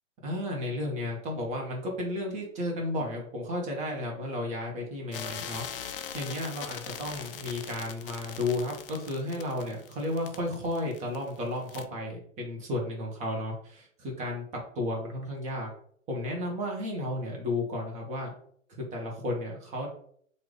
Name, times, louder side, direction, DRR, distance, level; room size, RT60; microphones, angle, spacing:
voice 1, 0.2-15.7 16.1-18.3 18.9-19.9, left 1 dB, 15° right, -1 dB, 1.0 m, -33 dB
sound 1, 5.1-11.4 11.7-11.8, left 8 dB, 45° left, 0.4 m, -41 dB
3.3 x 2.6 x 3.3 m, 0.62 s
hypercardioid pair, 130°, 40 cm